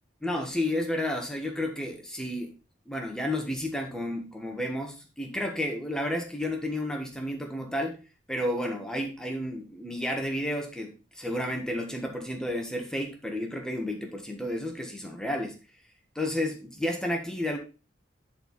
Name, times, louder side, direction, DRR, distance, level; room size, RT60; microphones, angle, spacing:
voice 1, 0.2-2.5 2.9-8.0 8.3-15.6 16.1-17.6, left 1 dB, 5° left, 2 dB, 1.3 m, -31 dB
10.0 x 4.4 x 4.0 m, 0.33 s
head